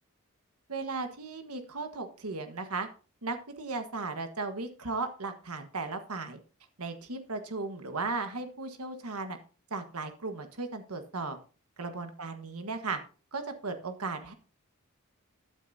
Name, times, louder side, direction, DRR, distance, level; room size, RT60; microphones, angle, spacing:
voice 1, 0.7-2.9 3.2-6.4 6.8-9.4 9.7-11.4 11.8-13.0 13.3-14.3, right 3 dB, 90° right, 7 dB, 1.5 m, -36 dB
14.0 x 9.3 x 2.8 m, 0.36 s
head